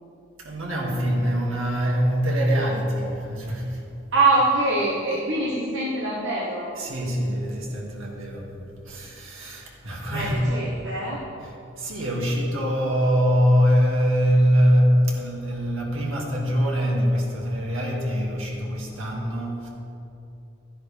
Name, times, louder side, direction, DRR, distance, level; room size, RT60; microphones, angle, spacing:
voice 1, 0.4-3.9 6.7-8.5 8.8-10.5 11.4-19.7, equal, 90° right, -2 dB, 2.2 m, -23 dB
voice 2, 4.1-6.7 10.1-11.2, right 2 dB, 65° right, -5 dB, 1.3 m, -23 dB
13.0 x 10.5 x 3.5 m, 2.8 s
head